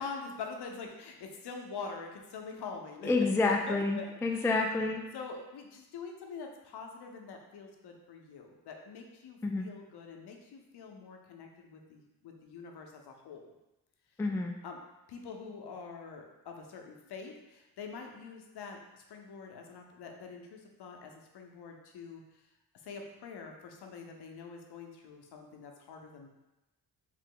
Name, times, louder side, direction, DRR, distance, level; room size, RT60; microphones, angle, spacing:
voice 1, 0.0-3.1 3.4-4.5 5.1-13.5 14.6-14.8 15.1-22.4 22.8-26.3, left 5 dB, 90° left, 2 dB, 0.6 m, -45 dB
voice 2, 3.0-5.0 9.4-9.7 14.2-14.5, left 3 dB, 5° left, 2 dB, 0.3 m, -29 dB
3.3 x 2.8 x 3.7 m, 0.98 s
cardioid pair, 70°, 38 cm